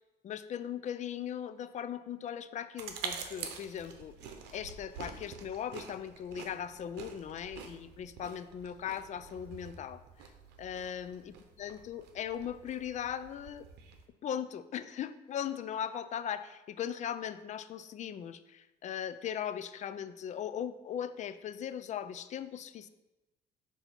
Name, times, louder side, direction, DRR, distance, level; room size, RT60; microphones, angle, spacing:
voice 1, 0.2-4.1 4.5-10.0 10.6-11.2 11.6-13.7 14.2-22.9, left 9 dB, 45° left, 13 dB, 0.4 m, -39 dB
sound 1, 2.8-14.1, right 6 dB, 90° right, 0.8 m, -47 dB
6.8 x 2.8 x 5.7 m, 1.0 s
cardioid pair, 110°, 17 cm